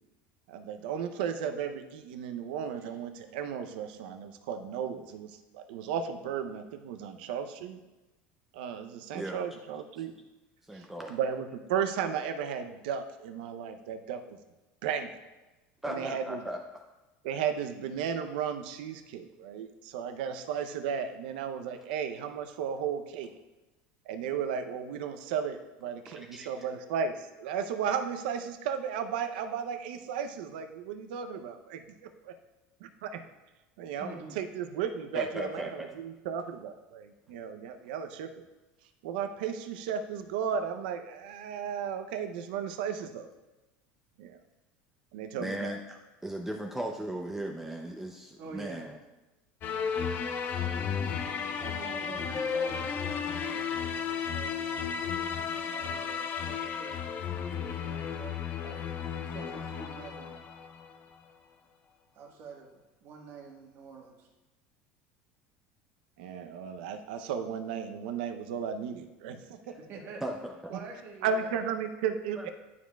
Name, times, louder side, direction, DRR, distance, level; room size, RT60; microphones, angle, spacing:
voice 1, 0.5-7.8 8.5-10.1 10.8-14.2 14.8-15.2 15.8-16.4 17.2-23.3 24.1-31.8 32.3-32.4 32.8-33.2 33.8-38.4 39.0-43.3 44.2-44.4 45.1-45.7 66.2-69.8 71.2-72.5, right 7 dB, 85° right, 8 dB, 0.6 m, -34 dB
voice 2, 10.7-11.2 15.8-16.6 26.1-26.7 35.1-35.9 45.4-49.0 70.2-70.7 72.4-72.5, right 1 dB, 5° right, 1 dB, 0.5 m, -37 dB
voice 3, 15.9-16.2 34.0-34.4 48.4-48.9 51.6-54.9 55.6-60.3 62.1-64.3 69.8-70.2 70.7-71.6, right 4 dB, 50° right, 1 dB, 1.4 m, -47 dB
sound 1, 49.6-61.0, left 7 dB, 40° left, 0.6 m, -33 dB
11.0 x 4.8 x 2.3 m, 1.1 s
supercardioid pair, 130°, 5 cm